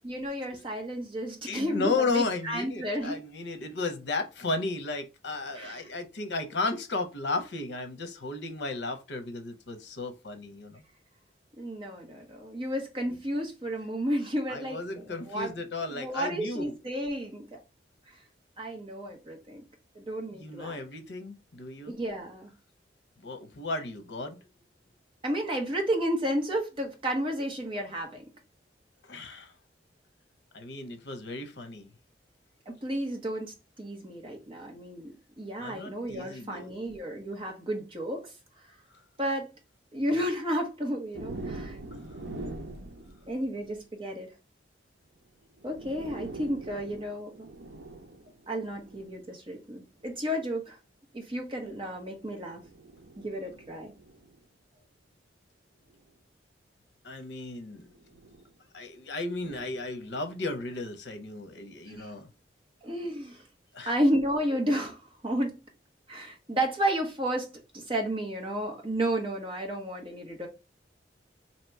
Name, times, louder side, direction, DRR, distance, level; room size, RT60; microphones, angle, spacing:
voice 1, 0.0-3.2 5.5-5.8 11.6-15.5 15.9-17.6 18.1-18.2 18.6-19.6 19.9-20.8 21.8-22.5 25.2-28.2 32.7-38.3 39.2-39.5 39.9-41.8 43.3-44.3 45.6-47.5 48.5-50.8 51.1-52.6 53.2-53.9 61.9-62.1 62.8-63.4 63.9-65.6 66.1-70.5, right 1 dB, 30° right, 1.0 m, -32 dB
voice 2, 1.5-10.8 14.5-16.8 20.3-22.0 23.2-24.4 29.0-29.5 30.5-31.9 35.6-36.7 38.9-39.0 41.9-42.2 57.0-57.9 58.7-62.3 63.7-63.9, left 3 dB, 70° left, 0.7 m, -34 dB
sound 1, 41.1-43.9 45.2-45.3 45.6-49.2 50.0-50.3 51.5-54.4 55.9-56.1 57.8-58.5 59.3-60.7, right 2 dB, 75° right, 0.8 m, -44 dB
2.9 x 2.9 x 4.5 m
head